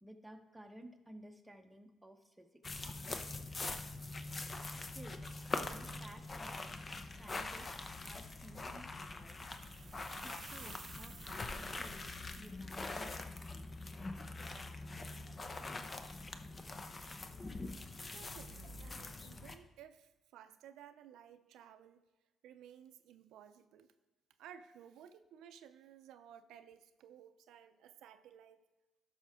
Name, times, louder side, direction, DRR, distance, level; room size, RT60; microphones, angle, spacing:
voice 1, 0.0-3.0 3.6-3.8 4.8-5.2 5.7-6.8 7.2-9.4 10.2-13.7, right 1 dB, 10° right, 4 dB, 0.9 m, -56 dB
sound 1, 2.6-19.6, left 2 dB, 30° left, 0.7 m, -44 dB
sound 2, 9.4-12.4, right 6 dB, 50° right, 0.9 m, -55 dB
voice 2, 18.0-22.0 22.4-23.9 24.4-28.6, right 9 dB, 85° right, 9 dB, 0.4 m, -57 dB
12.5 x 5.8 x 3.6 m, 1.2 s
cardioid pair, 90°, 0 cm